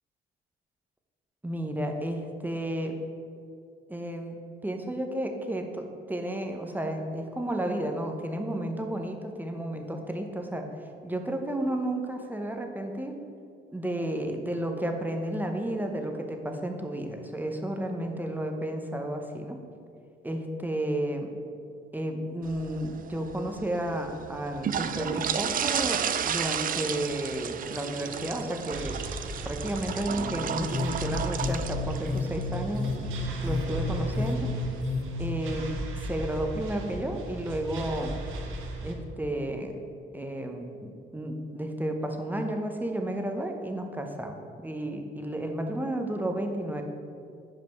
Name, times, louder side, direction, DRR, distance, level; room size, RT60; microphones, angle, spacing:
voice 1, 1.4-3.0 3.9-10.7 11.0-13.2 13.7-19.6 20.2-21.3 21.9-29.0 29.4-32.9 33.4-34.5 35.2-35.6 36.1-38.1 38.8-39.8 40.1-46.8, right 1 dB, 10° right, 4 dB, 0.8 m, -32 dB
sound 1, 22.4-34.8, right 8 dB, 45° right, 0.4 m, -34 dB
sound 2, 28.7-38.9, right 2 dB, 85° right, 0.8 m, -36 dB
sound 3, 30.2-35.4, left 4 dB, 45° left, 1.0 m, -33 dB
5.3 x 5.1 x 5.9 m, 2.4 s
cardioid pair, 90°, 20 cm